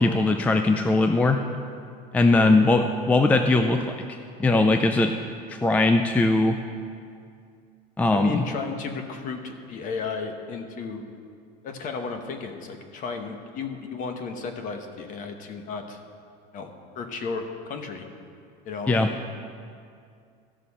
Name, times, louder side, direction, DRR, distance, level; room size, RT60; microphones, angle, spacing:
voice 1, 0.0-1.4 2.1-5.1 5.5-6.6 8.0-8.4 18.9-19.1, left 2 dB, 10° left, 6 dB, 0.3 m, -20 dB
voice 2, 8.1-11.0 11.6-16.0 16.5-18.1 18.6-19.0, left 5 dB, 45° left, 6 dB, 1.1 m, -34 dB
15.0 x 6.3 x 4.2 m, 2.3 s
cardioid pair, 135°, 19 cm